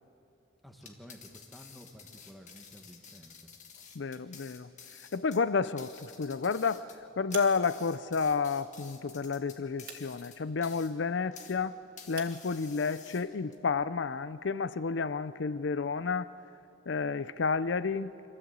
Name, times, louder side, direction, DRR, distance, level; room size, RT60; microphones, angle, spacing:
voice 1, 0.6-3.5, equal, ahead, 3 dB, 1.5 m, -52 dB
sound 1, 0.7-11.6 12.0-13.6, left 6 dB, 40° left, 1.6 m, -52 dB
voice 2, 3.9-4.7 5.1-6.9 7.2-11.8 12.1-16.3 16.9-18.3, left 5 dB, 60° left, 15 dB, 0.5 m, -31 dB
sound 2, 5.2-14.4, right 6 dB, 45° right, 2.1 m, -53 dB
26.5 x 13.5 x 8.1 m, 2.8 s
head